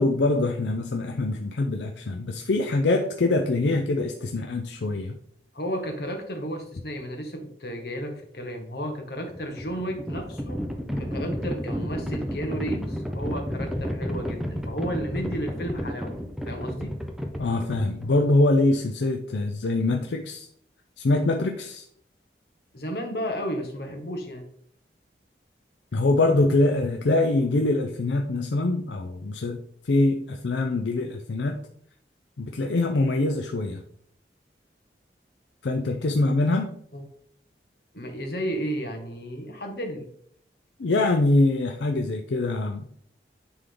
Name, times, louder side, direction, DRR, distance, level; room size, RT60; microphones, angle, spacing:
voice 1, 0.0-5.1 17.4-20.5 21.0-21.8 25.9-29.6 29.8-31.6 32.4-33.8 35.6-36.7 40.8-42.9, left 2 dB, 80° left, 4 dB, 0.5 m, -24 dB
voice 2, 5.5-10.6 11.0-16.1 16.4-17.0 22.7-24.4 36.0-36.2 36.9-37.0 37.9-40.1, equal, 65° left, 3 dB, 1.4 m, -33 dB
Livestock farm animals working animals, 9.3-18.3, equal, ahead, 0.7 m, -32 dB
9.7 x 3.6 x 3.8 m, 0.65 s
head